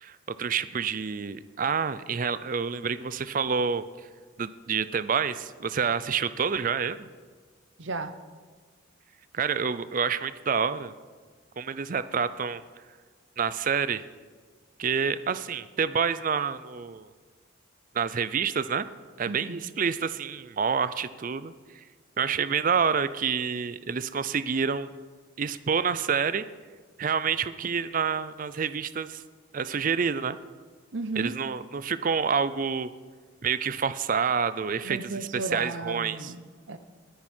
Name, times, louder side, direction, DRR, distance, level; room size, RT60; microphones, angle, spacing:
voice 1, 0.0-3.8 4.4-7.1 9.3-10.9 11.6-12.6 13.4-14.0 14.8-17.1 17.9-18.9 19.2-21.8 22.2-24.9 25.4-26.5 27.0-29.2 29.5-30.4 31.2-32.9 33.4-35.0 35.3-36.3, right 6 dB, 40° right, 14 dB, 0.4 m, -28 dB
voice 2, 7.8-8.1 19.3-19.6 30.9-31.3 34.8-36.8, right 3 dB, 60° right, 10 dB, 0.8 m, -34 dB
21.0 x 10.5 x 4.4 m, 1.5 s
head